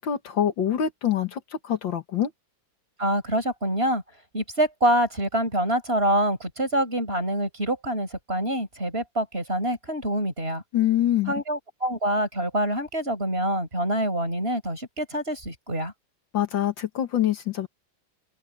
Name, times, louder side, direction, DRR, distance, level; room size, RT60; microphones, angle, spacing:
voice 1, 0.0-2.3 10.7-11.3 16.3-17.7, left 10 dB, 75° left, 2.1 m, -25 dB
voice 2, 3.0-4.0 4.3-10.6 11.3-15.9, right 1 dB, 30° right, 6.7 m, -26 dB
omnidirectional pair, 2.1 m